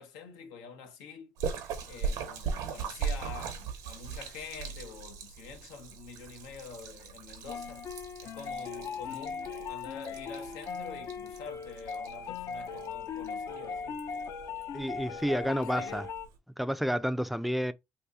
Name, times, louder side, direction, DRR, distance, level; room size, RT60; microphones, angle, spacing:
voice 1, 0.0-1.3 1.9-7.8 8.2-14.0 15.3-16.0, left 6 dB, 90° left, 0.7 m, -46 dB
Splash splatter, 1.4-16.4, right 6 dB, 80° right, 0.8 m, -40 dB
sound 1, 7.5-16.3, left 6 dB, 55° left, 0.5 m, -39 dB
voice 2, 14.7-16.1 16.6-17.7, equal, ahead, 0.3 m, -30 dB
2.7 x 2.6 x 3.4 m
supercardioid pair, 80°, 6 cm